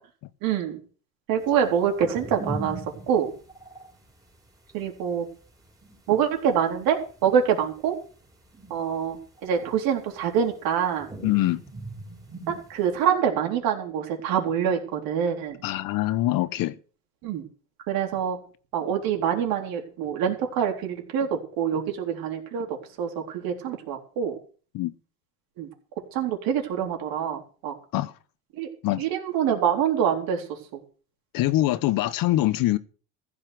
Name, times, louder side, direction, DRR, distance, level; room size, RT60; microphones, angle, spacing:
voice 1, 0.4-0.8 1.3-2.8 3.1-3.3 4.7-5.3 6.1-8.0 8.7-11.1 12.5-15.6 17.2-17.4 17.9-18.4 18.7-24.4 25.6-25.7 26.1-27.7 28.5-28.7 29.0-30.8, right 8 dB, 75° right, 3.9 m, -25 dB
sound 1, 1.7-4.1 4.4-4.5 4.7-5.0 5.4-6.0 6.2-7.5 7.9-8.9 9.2-10.7 11.0-13.1, right 2 dB, 10° right, 3.5 m, -39 dB
voice 2, 11.2-11.6 15.6-16.8 24.7-24.9 27.9-28.1 28.8-29.0 31.3-32.8, left 15 dB, 65° left, 1.1 m, -24 dB
15.0 x 5.6 x 9.5 m
cardioid pair, 125°, 36 cm